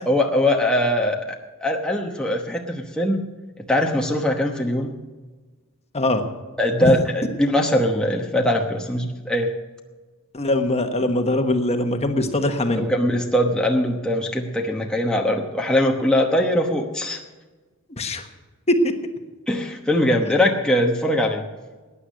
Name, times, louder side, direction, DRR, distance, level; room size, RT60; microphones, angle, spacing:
voice 1, 0.1-3.2 3.7-5.0 6.6-9.5 12.7-17.2 19.5-21.4, left 1 dB, 5° left, 0 dB, 1.0 m, -21 dB
voice 2, 10.3-12.9 18.0-18.2 18.7-18.9, left 1 dB, 30° left, 6 dB, 1.2 m, -21 dB
15.5 x 10.0 x 6.4 m, 1.3 s
head